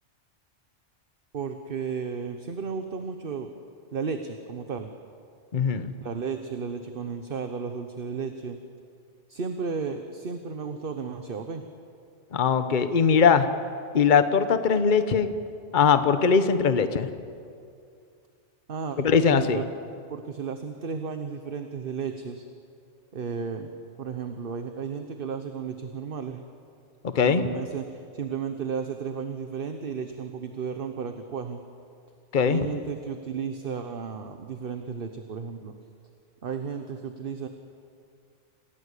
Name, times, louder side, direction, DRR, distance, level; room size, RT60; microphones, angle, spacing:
voice 1, 1.3-3.5 3.9-4.9 6.0-8.6 9.3-11.6 18.7-19.6 20.1-22.4 23.1-23.7 24.0-26.4 27.2-31.6 32.5-35.7 36.4-37.5, right 6 dB, 50° right, 7 dB, 1.2 m, -33 dB
voice 2, 5.5-5.9 12.3-13.5 13.9-15.3 15.7-17.1 19.0-19.6 27.1-27.4 32.3-32.6, left 6 dB, 45° left, 10 dB, 1.1 m, -21 dB
28.0 x 16.5 x 8.4 m, 2.4 s
omnidirectional pair, 1.2 m